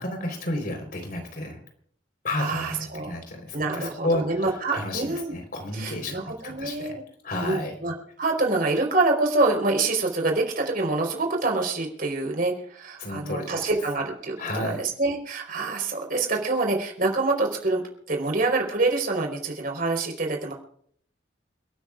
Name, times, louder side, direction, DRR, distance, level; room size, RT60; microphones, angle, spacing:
voice 1, 0.0-1.6 2.2-4.4 4.7-7.0 7.2-7.7 13.0-13.7 14.4-14.8, left 1 dB, 55° left, 4 dB, 4.0 m, -31 dB
voice 2, 2.3-3.1 3.5-5.4 5.7-7.0 7.4-20.5, right 3 dB, 55° right, 2 dB, 4.2 m, -26 dB
29.5 x 13.0 x 2.5 m, 0.62 s
head